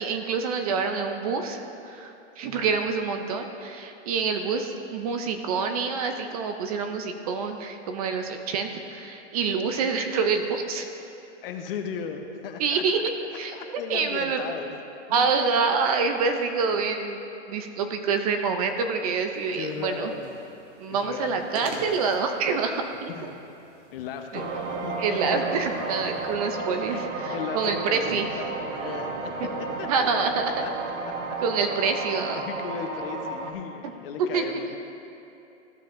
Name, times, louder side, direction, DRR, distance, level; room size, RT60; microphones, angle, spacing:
voice 1, 0.0-10.9 12.6-13.0 13.3-13.6 13.9-14.4 15.1-17.2 17.5-20.1 20.8-23.3 24.3-24.4 25.0-28.3 29.9-30.6 31.4-32.4 34.2-34.6, right 5 dB, 30° right, 6 dB, 0.5 m, -27 dB
voice 2, 11.4-12.8 13.5-14.8 15.1-15.3 19.5-20.3 20.9-21.4 23.1-23.4 23.9-25.4 26.0-26.4 26.9-27.0 27.3-29.3 29.8-30.3 30.6-30.7 31.3-31.4 31.7-31.8 32.3-34.8, left 7 dB, 50° left, 5 dB, 0.9 m, -36 dB
sound 1, 19.3-26.3, right 2 dB, 55° right, 1.8 m, -45 dB
sound 2, 24.3-33.5, right 3 dB, 75° right, 1.2 m, -33 dB
15.0 x 7.4 x 2.6 m, 2.8 s
hypercardioid pair, 150°, 36 cm